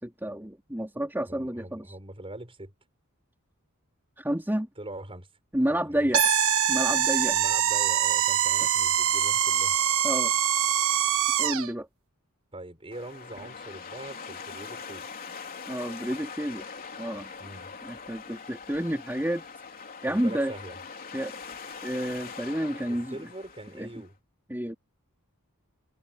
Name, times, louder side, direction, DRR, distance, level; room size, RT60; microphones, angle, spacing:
voice 1, 0.0-2.0 4.2-4.7 5.5-6.2 6.7-7.4 10.0-10.3 11.4-11.9 15.7-16.7 17.0-17.3 17.8-19.4 20.0-20.5 21.1-21.3 21.8-23.2 23.7-23.9 24.5-24.7, right 1 dB, 10° right, 3.6 m, -30 dB
voice 2, 1.3-2.7 4.8-5.3 5.7-6.1 7.3-9.8 12.5-15.1 17.4-17.7 20.1-20.8 22.9-24.1, right 1 dB, 25° right, 5.8 m, -42 dB
sound 1, 6.1-11.7, right 9 dB, 65° right, 1.3 m, -24 dB
sound 2, 12.9-24.1, left 5 dB, 40° left, 3.5 m, -42 dB
head